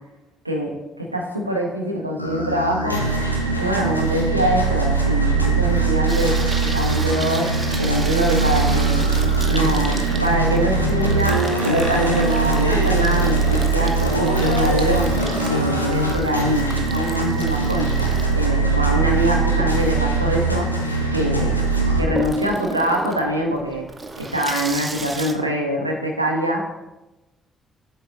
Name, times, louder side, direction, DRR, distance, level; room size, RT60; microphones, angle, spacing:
voice 1, 0.4-3.0 3.5-7.5 7.8-9.1 9.5-15.1 15.5-17.9 18.3-20.7 21.1-21.6 22.0-23.9 24.2-26.6, equal, 90° right, 1 dB, 0.6 m, -24 dB
sound 1, 2.2-22.0, right 3 dB, 90° left, 0.5 m, -21 dB
Water tap faucet / Sink (filling or washing), 6.1-25.3, right 3 dB, 25° right, 0.8 m, -34 dB
7.5 x 3.8 x 4.2 m, 1.0 s
figure-of-eight pair, 40°, 0 cm